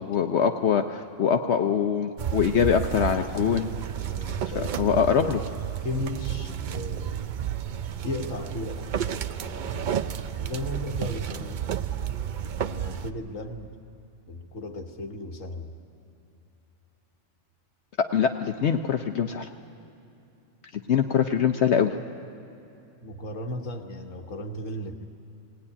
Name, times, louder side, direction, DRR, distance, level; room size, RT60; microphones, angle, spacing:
voice 1, 0.1-3.7 4.4-5.4 18.0-19.5 20.9-21.9, left 7 dB, 65° left, 6 dB, 1.0 m, -23 dB
sound 1, 2.2-13.1, right 9 dB, 50° right, 0.6 m, -31 dB
voice 2, 4.1-5.4 5.8-7.2 8.0-10.0 10.4-11.8 12.6-13.8 14.3-15.7 23.0-25.0, left 1 dB, 85° left, 3 dB, 1.6 m, -36 dB
19.0 x 18.0 x 9.8 m, 2.8 s
omnidirectional pair, 1.3 m